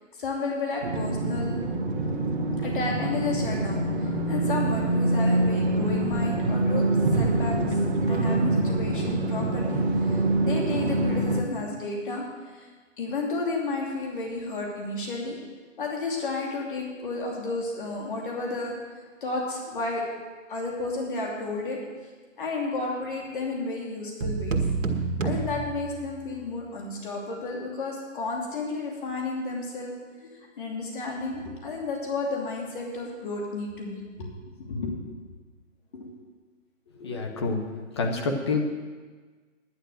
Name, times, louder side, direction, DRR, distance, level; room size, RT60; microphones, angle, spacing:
voice 1, 0.2-1.6 2.6-6.8 7.1-7.8 8.1-12.2 12.5-12.7 13.0-15.4 15.8-18.8 19.2-20.0 20.5-21.8 22.4-24.6 25.2-34.3 34.6-35.0 35.9-36.1, left 3 dB, 40° left, -1 dB, 2.7 m, -32 dB
sound 1, 0.8-11.4, right 2 dB, 40° right, 1.6 m, -25 dB
sound 2, 24.2-26.5, right 4 dB, 75° right, 1.7 m, -29 dB
voice 2, 37.0-37.6 37.9-38.6, left 3 dB, 20° left, 2 dB, 0.9 m, -27 dB
10.5 x 9.5 x 6.3 m, 1.4 s
hypercardioid pair, 160°, 39 cm